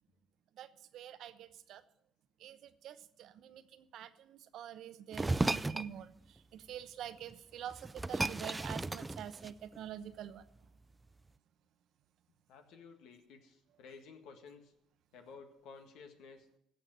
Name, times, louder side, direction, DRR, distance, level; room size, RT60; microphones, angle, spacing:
voice 1, 0.6-1.8 2.4-10.4, right 10 dB, 70° right, 12 dB, 0.8 m, -47 dB
sound 1, 5.1-5.9 7.3-7.4 7.7-9.8, right 2 dB, 15° right, 0.4 m, -35 dB
voice 2, 12.5-14.7 15.1-16.5, left 5 dB, 75° left, 6 dB, 1.7 m, -54 dB
16.0 x 5.8 x 7.8 m, 0.76 s
supercardioid pair, 80°, 0 cm